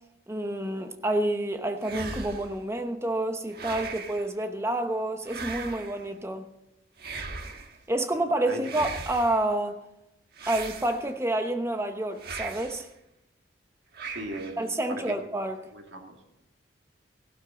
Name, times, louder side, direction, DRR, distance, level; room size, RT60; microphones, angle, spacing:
voice 1, 0.3-6.5 7.9-9.8 10.5-12.9 14.6-15.6, right 1 dB, 15° right, 1.0 m, -29 dB
sound 1, 1.8-2.6 3.5-4.3 5.2-6.0 7.0-7.8 8.6-9.4 10.4-11.2 12.2-12.8 13.9-14.6, right 4 dB, 55° right, 1.4 m, -38 dB
voice 2, 8.1-8.6 14.0-14.8 15.1-15.2 15.7-16.2, right 1 dB, 75° right, 2.3 m, -39 dB
15.5 x 12.0 x 3.9 m
head